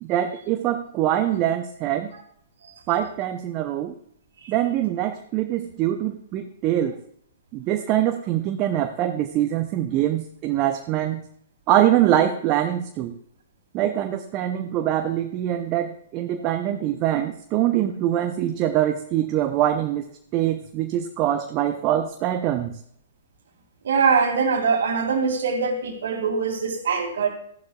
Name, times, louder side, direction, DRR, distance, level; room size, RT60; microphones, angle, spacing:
voice 1, 0.0-2.1 2.9-4.0 4.5-7.0 7.5-11.2 11.7-13.1 13.7-20.1 20.3-22.8, right 12 dB, 35° right, 7 dB, 0.7 m, -23 dB
voice 2, 23.8-27.3, right 5 dB, 65° right, 4 dB, 2.2 m, -22 dB
14.0 x 11.5 x 2.4 m, 0.67 s
figure-of-eight pair, 115°, 0 cm